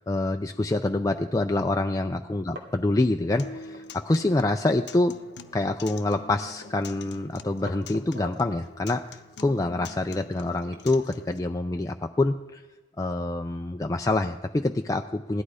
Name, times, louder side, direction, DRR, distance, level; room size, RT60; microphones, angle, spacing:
voice 1, 0.0-5.2 5.5-12.6 13.0-15.4, left 2 dB, 20° left, 5 dB, 0.4 m, -26 dB
sound 1, 0.9-1.2 1.9-2.0 2.2-2.9 3.1-4.2 4.5-4.6 4.9-5.6 6.0-6.8 7.3-8.5 9.0-10.9, left 1 dB, 85° right, 2.2 m, -47 dB
Acoustic guitar, 3.4-11.4, left 4 dB, 70° left, 0.8 m, -45 dB
16.5 x 12.0 x 4.9 m, 1.2 s
head